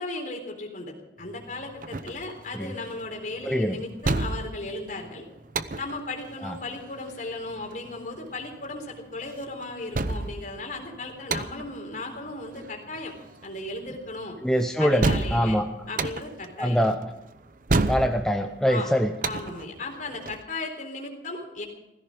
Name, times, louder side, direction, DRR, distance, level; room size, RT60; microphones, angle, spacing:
voice 1, 0.0-5.3 5.8-13.1 13.4-14.4 14.8-15.6 15.9-16.9 18.7-18.9 19.2-21.6, left 2 dB, 45° left, 3 dB, 3.9 m, -36 dB
sound 1, 1.2-20.4, right 2 dB, 45° right, 0.8 m, -32 dB
voice 2, 3.4-3.8 6.4-6.6 14.4-15.7 16.6-17.0 17.8-19.1, equal, 5° left, 5 dB, 0.7 m, -24 dB
17.5 x 16.0 x 5.1 m, 0.94 s
head